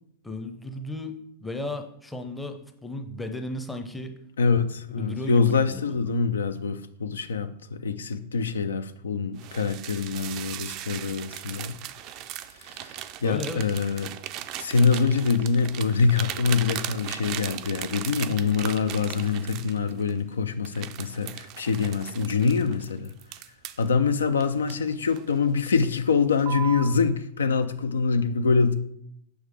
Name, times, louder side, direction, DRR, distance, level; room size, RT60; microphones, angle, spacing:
voice 1, 0.2-4.2 4.9-6.1 13.2-13.7, left 2 dB, 5° left, 0.7 m, -35 dB
voice 2, 4.4-11.7 12.8-14.1 14.6-23.1 23.8-28.7, left 5 dB, 70° left, 0.3 m, -25 dB
sound 1, 9.4-20.2 20.6-23.9 24.4-25.3 25.7-25.9 26.4-27.0, right 12 dB, 40° right, 0.3 m, -38 dB
6.1 x 4.7 x 3.4 m
figure-of-eight pair, 90°, 0 cm